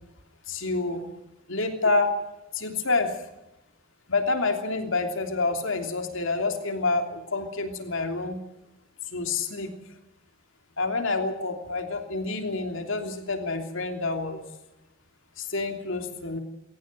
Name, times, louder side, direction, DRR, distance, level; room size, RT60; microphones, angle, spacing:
voice 1, 0.5-1.0 1.5-2.1 2.5-3.1 4.1-8.4 9.1-9.7 10.8-14.4 15.4-16.4, left 3 dB, 60° left, 5 dB, 3.1 m, -28 dB
21.5 x 18.5 x 7.7 m, 0.93 s
head